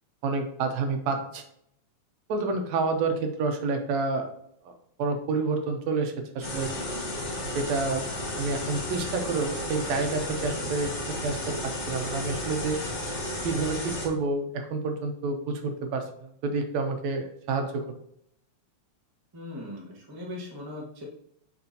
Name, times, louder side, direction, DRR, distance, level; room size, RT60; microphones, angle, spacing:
voice 1, 0.2-1.4 2.3-4.3 4.7-4.8 5.0-6.7 7.6-8.0 8.4-10.9 11.2-11.4 11.6-12.8 13.4-16.0 16.4-17.9, right 3 dB, 75° right, 5 dB, 2.0 m, -28 dB
sound 1, 6.4-14.1, left 1 dB, 75° left, 0.6 m, -33 dB
voice 2, 19.3-21.0, left 2 dB, 30° right, -3 dB, 0.4 m, -39 dB
6.8 x 5.5 x 2.8 m, 0.69 s
omnidirectional pair, 3.3 m